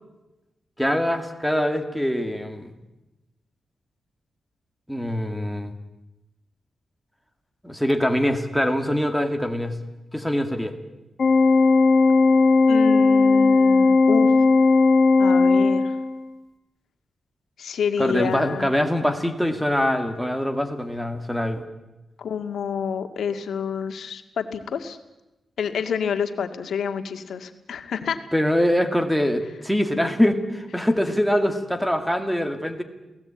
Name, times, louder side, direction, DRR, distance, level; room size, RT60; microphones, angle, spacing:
voice 1, 0.8-2.7 4.9-5.7 7.6-9.8 10.1-10.7 18.0-21.6 28.3-32.8, equal, ahead, 5 dB, 2.1 m, -23 dB
Organ, 11.2-16.2, left 3 dB, 50° left, 1.7 m, -17 dB
voice 2, 12.7-14.3 15.2-16.0 17.6-18.7 22.2-25.0 25.6-28.2, left 7 dB, 85° left, 7 dB, 1.9 m, -28 dB
28.5 x 18.0 x 8.8 m, 1.0 s
wide cardioid pair, 170°, 0 cm